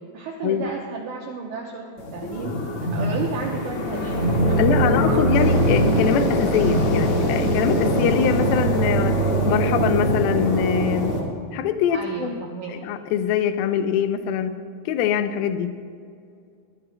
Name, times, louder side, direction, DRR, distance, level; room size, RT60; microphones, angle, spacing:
voice 1, 0.0-2.5 2.9-5.2 11.9-12.7, right 4 dB, 75° right, 0 dB, 1.8 m, -33 dB
sound 1, 2.0-11.2, right 1 dB, 45° left, 2.2 m, -22 dB
voice 2, 4.6-9.2 9.5-11.2 11.5-12.4 12.7-14.6 14.9-15.7, left 8 dB, 80° left, 9 dB, 2.3 m, -23 dB
sound 2, 4.6-5.3, right 5 dB, 55° right, 1.1 m, -37 dB
22.0 x 13.5 x 2.3 m, 2.3 s
omnidirectional pair, 4.7 m